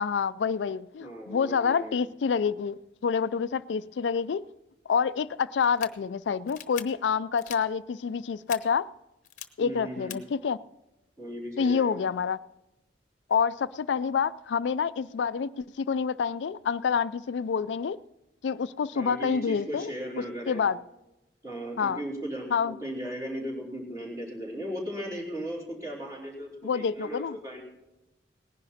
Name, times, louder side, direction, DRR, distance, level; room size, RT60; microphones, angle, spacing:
voice 1, 0.0-4.4 4.9-8.9 9.6-10.6 11.6-12.4 13.3-18.0 18.4-19.9 20.5-20.8 21.8-22.0 22.5-22.8 26.6-27.4, left 6 dB, 90° left, 0.4 m, -27 dB
voice 2, 1.0-2.0 9.6-10.2 11.2-12.0 18.9-20.6 21.4-27.6, equal, 20° right, 3.9 m, -37 dB
sound 1, 5.6-5.9 6.5-6.8 7.4-7.6 8.5-8.6 9.2-9.4 10.1-10.2, left 10 dB, 45° left, 1.0 m, -40 dB
18.5 x 10.5 x 4.2 m
head